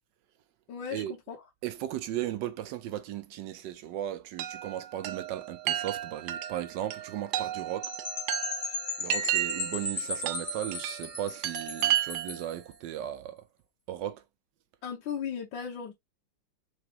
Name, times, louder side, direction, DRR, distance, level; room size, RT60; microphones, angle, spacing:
voice 1, 0.7-1.0 1.3-1.4 14.8-15.9, left 7 dB, 70° left, 1.7 m, -36 dB
voice 2, 1.6-7.9 9.0-13.4 13.9-14.2, right 12 dB, 75° right, 1.1 m, -36 dB
Chime, 4.4-12.5, right 13 dB, 90° right, 1.5 m, -33 dB
Percussion / Wind chime, 7.8-12.5, left 3 dB, 30° left, 1.0 m, -36 dB
4.9 x 2.9 x 2.9 m
omnidirectional pair, 2.3 m